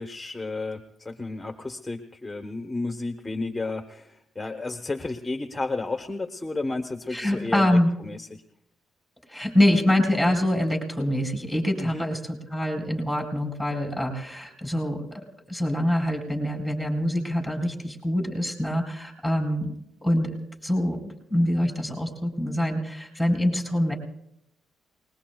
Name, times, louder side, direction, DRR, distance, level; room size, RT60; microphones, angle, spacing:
voice 1, 0.0-8.4 11.8-12.1, left 3 dB, 15° left, 5 dB, 1.0 m, -32 dB
voice 2, 7.1-7.9 9.3-15.0 15.5-19.7 20.0-20.3 20.6-23.9, left 1 dB, 5° right, 0 dB, 4.3 m, -25 dB
28.5 x 20.0 x 2.3 m, 0.80 s
cardioid pair, 90°, 0 cm